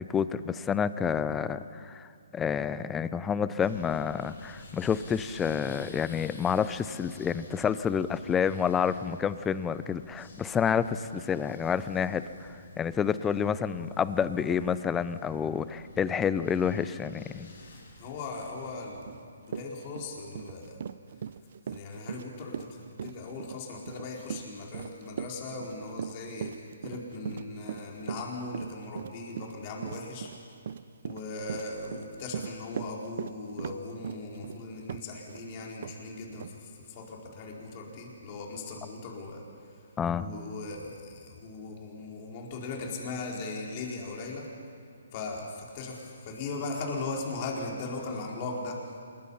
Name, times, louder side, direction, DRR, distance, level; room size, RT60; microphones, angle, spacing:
voice 1, 0.0-2.1 2.3-17.5 40.0-40.3, left 7 dB, 10° left, 15 dB, 0.6 m, -29 dB
sound 1, 3.6-18.7, left 2 dB, 65° left, 7.6 m, -51 dB
voice 2, 18.0-20.8 21.7-30.3 31.0-39.8 40.2-44.5 45.1-48.8, left 3 dB, 35° left, -1 dB, 4.5 m, -38 dB
Run, 19.1-19.2 19.5-35.4 35.8-36.0 36.4-36.5, right 7 dB, 55° right, 0.6 m, -39 dB
26.0 x 22.0 x 5.7 m, 2.5 s
hypercardioid pair, 150°, 0 cm